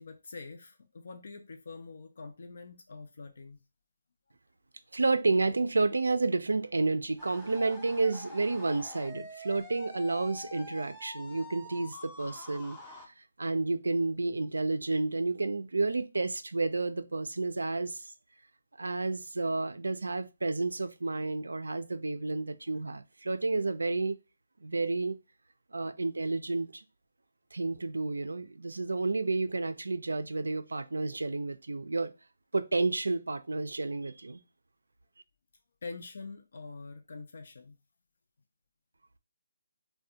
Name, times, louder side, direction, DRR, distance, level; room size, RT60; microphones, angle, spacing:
voice 1, 0.0-3.6 35.8-37.8, left 4 dB, 65° left, 0.4 m, -45 dB
voice 2, 4.9-12.8 13.1-18.1 18.8-24.2 24.6-25.2 25.7-26.8 27.5-32.1 32.5-34.4, right 3 dB, 85° right, 0.3 m, -31 dB
sound 1, 7.2-13.1, left 2 dB, 5° left, 0.5 m, -46 dB
2.4 x 2.1 x 2.7 m
figure-of-eight pair, 155°, 0 cm